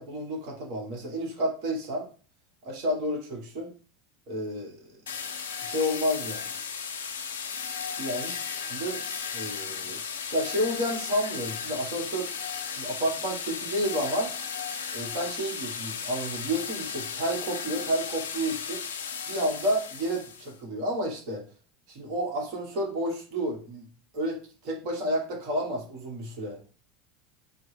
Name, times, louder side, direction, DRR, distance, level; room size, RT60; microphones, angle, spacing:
voice 1, 0.0-2.1 2.6-3.7 4.3-4.8 5.6-6.5 8.0-8.4 8.7-9.0 9.3-10.0 10.3-12.3 12.8-14.3 14.9-18.8 19.3-21.4 21.9-23.9 24.1-26.6, equal, 55° right, -1 dB, 1.4 m, -30 dB
sound 1, 5.1-20.5, left 6 dB, 80° left, 0.5 m, -35 dB
4.2 x 2.1 x 3.3 m, 0.39 s
hypercardioid pair, 85°, 0 cm